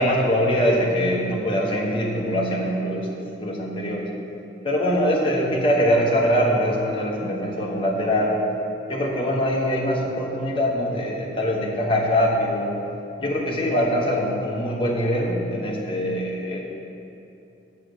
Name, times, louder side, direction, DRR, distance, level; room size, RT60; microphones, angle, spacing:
voice 1, 0.0-4.1 4.6-8.4 8.9-12.8 13.2-16.6, equal, 30° left, -3 dB, 1.2 m, -23 dB
6.8 x 6.5 x 6.8 m, 2.8 s
head